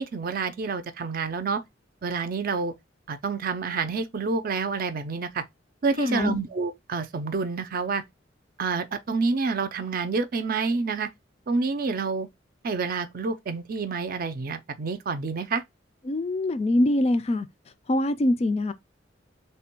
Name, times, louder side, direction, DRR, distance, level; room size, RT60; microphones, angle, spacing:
voice 1, 0.0-1.6 2.0-2.7 3.1-5.4 5.8-8.0 8.6-11.1 11.5-12.3 12.6-15.6, right 4 dB, 50° right, 0.5 m, -28 dB
voice 2, 6.0-6.4 16.0-17.5 17.9-18.7, left 1 dB, 35° left, 0.4 m, -24 dB
3.3 x 2.2 x 4.3 m
head